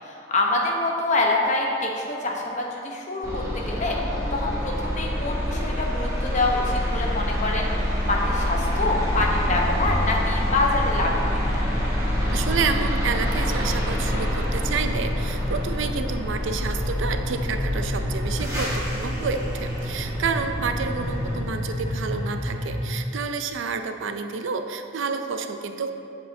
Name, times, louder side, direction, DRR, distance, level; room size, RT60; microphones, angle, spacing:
voice 1, 0.1-4.0 4.3-11.3 11.5-11.6, left 2 dB, 35° left, -1 dB, 0.8 m, -26 dB
sound 1, 3.2-21.4, equal, 15° right, 1.1 m, -27 dB
sound 2, 10.2-22.9, equal, 45° right, 1.7 m, -32 dB
voice 2, 12.3-25.9, right 5 dB, 70° right, 7 dB, 0.4 m, -29 dB
8.0 x 7.5 x 2.7 m, 2.7 s
head